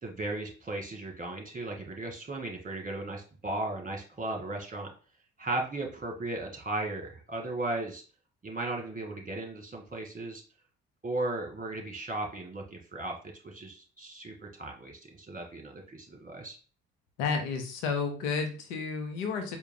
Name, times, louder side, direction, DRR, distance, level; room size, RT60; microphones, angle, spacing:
voice 1, 0.0-4.9 5.4-8.0 8.4-10.4 11.0-13.2 13.4-16.6, right 2 dB, 25° right, 2 dB, 1.7 m, -36 dB
voice 2, 17.2-19.6, left 5 dB, 85° left, 5 dB, 0.8 m, -31 dB
4.5 x 2.3 x 3.7 m, 0.39 s
hypercardioid pair, 45°, 33 cm